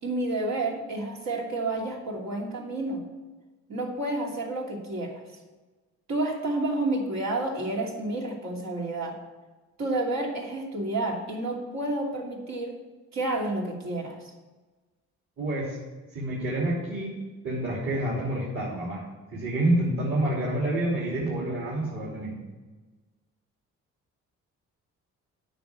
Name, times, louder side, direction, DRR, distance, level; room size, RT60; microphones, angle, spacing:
voice 1, 0.0-3.0 3.7-5.2 6.1-9.2 9.8-12.8 13.1-14.3, right 2 dB, 65° right, -1 dB, 2.7 m, -30 dB
voice 2, 15.4-15.8 16.1-17.1 17.4-19.0 19.3-22.3, right 1 dB, 45° right, -5 dB, 3.3 m, -28 dB
9.1 x 6.0 x 8.2 m, 1.3 s
cardioid pair, 90°, 30 cm